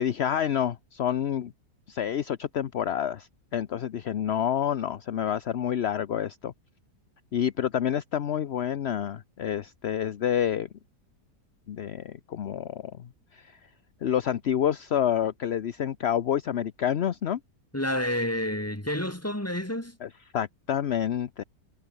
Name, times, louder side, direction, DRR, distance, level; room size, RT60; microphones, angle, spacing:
voice 1, 0.0-1.5 1.9-6.5 7.3-10.7 11.7-13.6 14.0-17.4 20.0-21.4, left 9 dB, 50° left, 0.8 m, -28 dB
voice 2, 17.7-20.0, left 1 dB, 10° left, 3.7 m, -29 dB
omnidirectional pair, 1.8 m